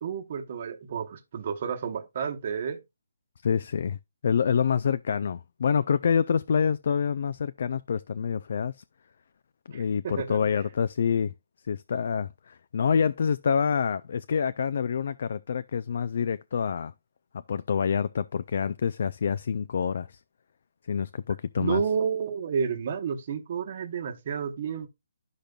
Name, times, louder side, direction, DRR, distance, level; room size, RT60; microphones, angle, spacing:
voice 1, 0.0-2.8 9.7-10.4 21.6-24.9, right 7 dB, 35° right, 1.0 m, -31 dB
voice 2, 3.4-4.0 4.2-8.8 9.7-11.3 11.7-16.9 17.5-20.2 20.9-21.8, left 6 dB, 50° left, 0.3 m, -27 dB
11.5 x 5.2 x 2.3 m
hypercardioid pair, 170°, 0 cm